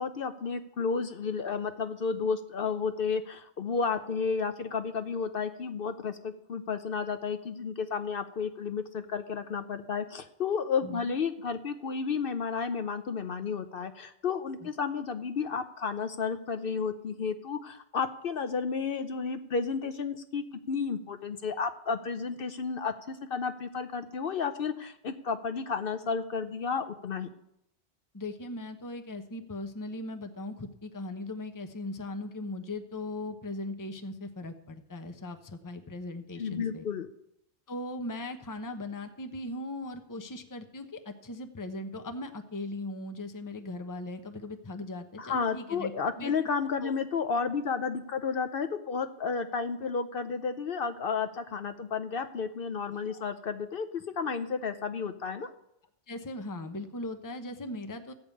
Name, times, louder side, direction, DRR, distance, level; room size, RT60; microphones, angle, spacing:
voice 1, 0.0-27.3 36.4-37.1 45.2-53.9 54.2-55.5, left 5 dB, 60° left, 8 dB, 0.9 m, -32 dB
voice 2, 10.8-11.1 14.6-14.7 28.1-36.8 37.7-45.9 46.2-46.3 46.8-46.9 52.9-53.2 56.1-58.1, left 2 dB, 20° left, 7 dB, 0.8 m, -39 dB
14.5 x 5.3 x 8.3 m, 0.78 s
omnidirectional pair, 1.1 m